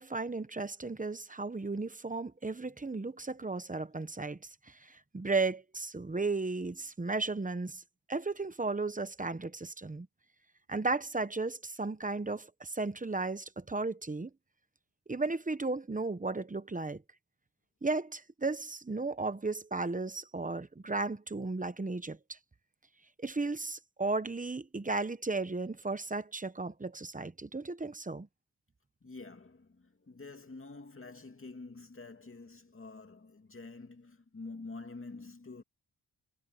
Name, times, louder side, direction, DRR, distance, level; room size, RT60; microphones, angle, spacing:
voice 1, 0.0-4.4 4.7-7.8 8.1-10.1 10.7-14.3 15.1-17.0 17.8-22.2 23.2-28.3, right 3 dB, 20° right, 0.9 m, -35 dB
voice 2, 29.0-35.6, left 3 dB, 35° left, 2.5 m, -47 dB
wide cardioid pair, 145°, 39 cm